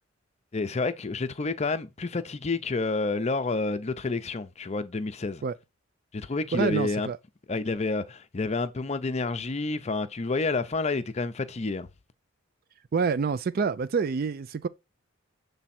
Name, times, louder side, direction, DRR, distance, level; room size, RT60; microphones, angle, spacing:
voice 1, 0.5-5.4 6.1-7.1 7.5-11.9, left 3 dB, 30° left, 0.5 m, -29 dB
voice 2, 6.5-7.2 12.9-14.7, right 5 dB, 45° right, 0.3 m, -27 dB
7.3 x 3.3 x 4.2 m
head